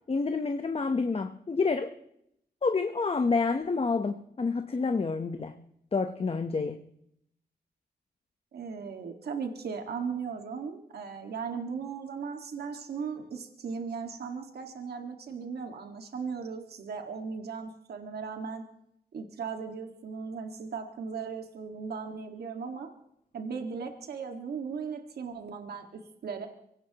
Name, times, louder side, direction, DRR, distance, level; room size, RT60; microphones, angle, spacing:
voice 1, 0.1-1.9 2.6-5.6 5.9-6.8, left 4 dB, 35° left, 8 dB, 0.9 m, -28 dB
voice 2, 8.5-18.6 19.1-22.9 23.3-26.5, right 5 dB, 85° right, 4 dB, 1.8 m, -37 dB
24.5 x 17.0 x 3.0 m, 0.75 s
cardioid pair, 75°, 16 cm